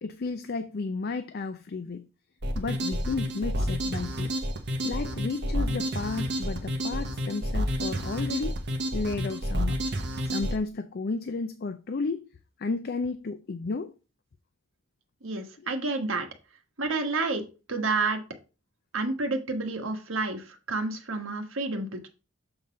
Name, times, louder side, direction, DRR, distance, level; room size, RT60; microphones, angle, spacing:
voice 1, 0.0-2.0 2.5-4.3 4.8-8.6 8.9-9.8 10.2-12.2 12.6-13.9, left 3 dB, 50° left, 0.5 m, -33 dB
sound 1, 2.4-10.6, equal, 60° right, 1.1 m, -30 dB
voice 2, 15.2-16.3 16.8-18.2 18.9-22.1, right 3 dB, 85° right, 1.4 m, -30 dB
7.1 x 3.9 x 5.1 m
head